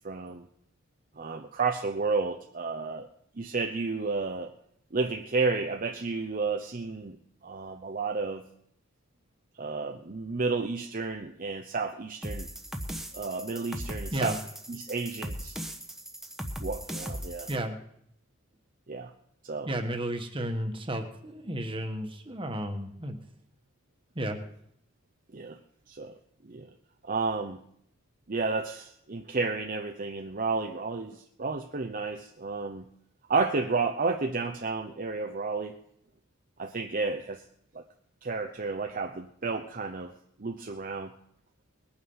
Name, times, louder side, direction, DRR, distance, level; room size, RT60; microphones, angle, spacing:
voice 1, 0.0-0.5 1.2-3.1 3.4-4.5 4.9-7.2 7.4-8.4 9.6-12.5 13.1-14.4 14.7-15.6 16.6-17.5 18.9-19.1 19.4-19.7 25.3-25.6 25.9-26.1 26.4-26.7 27.0-27.6 28.3-32.9 33.3-35.8 36.6-37.4 37.7-37.8 38.2-40.1 40.4-41.1, right 4 dB, 40° right, 4 dB, 0.8 m, -31 dB
sound 1, 12.2-17.6, equal, ahead, 1.2 m, -38 dB
voice 2, 17.5-17.8 19.6-23.2 24.1-24.4, right 1 dB, 25° right, 4 dB, 1.5 m, -33 dB
20.5 x 8.7 x 5.6 m, 0.72 s
head